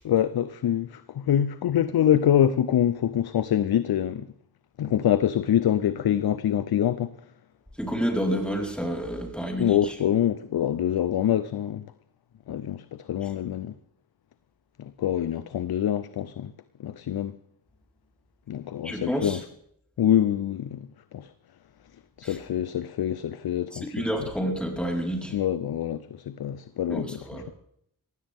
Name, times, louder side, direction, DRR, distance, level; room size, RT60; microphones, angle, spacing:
voice 1, 0.0-4.3 4.8-7.1 9.6-11.9 12.5-13.7 14.8-16.5 16.8-17.4 18.5-19.4 20.0-21.3 22.2-24.1 25.3-27.5, left 10 dB, 75° left, 0.6 m, -25 dB
voice 2, 7.8-9.9 18.8-19.4 22.2-22.4 23.7-25.3 26.9-27.4, equal, 5° left, 4.5 m, -29 dB
20.5 x 16.0 x 3.6 m
cardioid pair, 75°, 37 cm